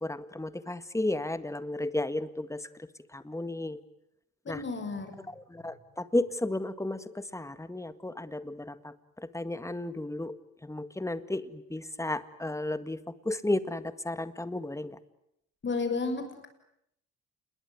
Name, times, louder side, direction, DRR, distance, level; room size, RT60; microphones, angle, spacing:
voice 1, 0.0-2.6 3.1-3.8 4.5-4.6 5.5-8.9 9.3-10.3 10.6-13.0 13.3-15.0, left 1 dB, 10° left, 13 dB, 1.9 m, -33 dB
voice 2, 4.4-5.2 15.6-16.5, left 4 dB, 40° left, 7 dB, 6.6 m, -32 dB
28.0 x 21.5 x 9.6 m, 0.76 s
cardioid pair, 90°, 30 cm